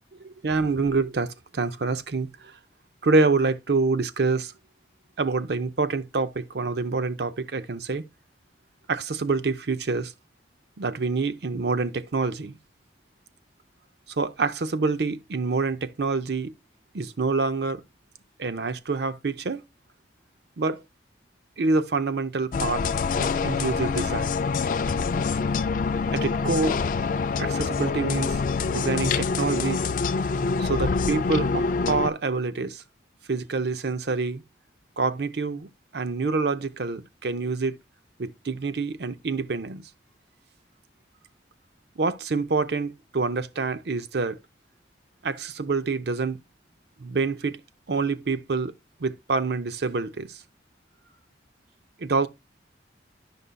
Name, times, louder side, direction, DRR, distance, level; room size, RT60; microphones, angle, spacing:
voice 1, 0.2-2.5 3.0-4.5 5.2-8.0 8.9-10.1 10.8-12.5 14.2-16.5 16.9-17.8 18.4-19.6 20.6-20.8 21.6-22.8 23.2-24.4 26.1-26.8 27.4-28.4 28.7-29.8 30.6-32.8 33.3-34.4 35.0-35.7 35.9-37.8 38.2-39.8 42.0-44.4 45.2-46.4 47.0-47.6 47.9-48.7 49.0-50.4 52.0-52.3, right 4 dB, 65° right, 0.6 m, -26 dB
sound 1, 22.5-32.1, left 4 dB, 45° left, 0.3 m, -25 dB
11.0 x 5.3 x 2.2 m
head